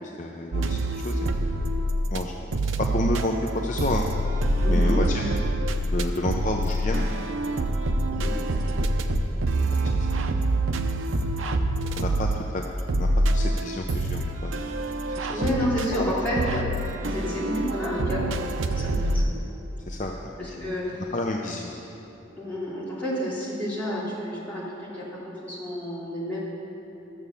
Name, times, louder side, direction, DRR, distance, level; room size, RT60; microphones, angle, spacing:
voice 1, 0.0-1.7 2.1-2.3 2.8-4.1 4.7-5.2 5.9-7.0 8.5-8.9 9.5-9.8 10.2-10.4 11.2-12.7 12.9-14.6 15.2-15.5 15.9-16.1 19.9-21.7, left 2 dB, 40° left, 0 dB, 0.6 m, -31 dB
sound 1, 0.5-2.2 2.5-19.2, right 1 dB, 85° right, 0.6 m, -26 dB
voice 2, 4.6-5.0 8.1-8.3 15.3-16.6 17.0-18.2 18.5-19.4 20.4-21.0 22.4-26.4, equal, 10° left, -9 dB, 3.0 m, -30 dB
13.0 x 7.1 x 6.9 m, 3.0 s
head